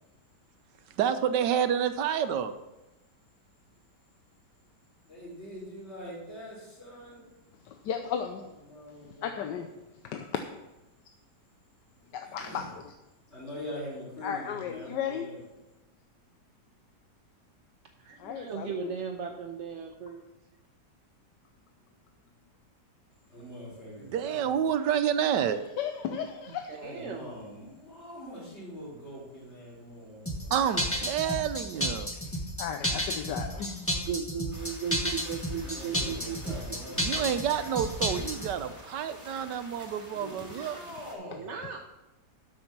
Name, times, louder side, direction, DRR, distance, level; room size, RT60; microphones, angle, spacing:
voice 1, 1.0-2.5 24.0-25.6 30.5-32.1 37.0-40.8, right 8 dB, 80° right, 10 dB, 1.4 m, -29 dB
voice 2, 5.1-7.3 8.7-9.6 12.4-12.6 13.3-15.4 23.3-24.5 26.8-30.5 35.6-37.4 40.1-41.5, equal, 40° left, -5 dB, 4.5 m, -43 dB
voice 3, 7.6-8.4 9.2-9.7 10.0-10.4 12.1-12.9 14.2-15.4 18.2-18.9 25.8-26.7 32.1-34.1, left 8 dB, 85° left, 6 dB, 1.4 m, -35 dB
voice 4, 18.0-20.2 26.5-27.3 34.0-36.4 36.9-37.0 37.5-37.7 38.1-38.2 39.3-39.5 40.5-40.8 41.2-41.8, right 7 dB, 55° right, 2 dB, 1.0 m, -37 dB
sound 1, 30.3-38.5, equal, 10° left, 1.3 m, -31 dB
sound 2, 34.5-41.1, right 1 dB, 25° right, 3.7 m, -49 dB
12.0 x 6.5 x 6.0 m, 1.0 s
omnidirectional pair, 1.8 m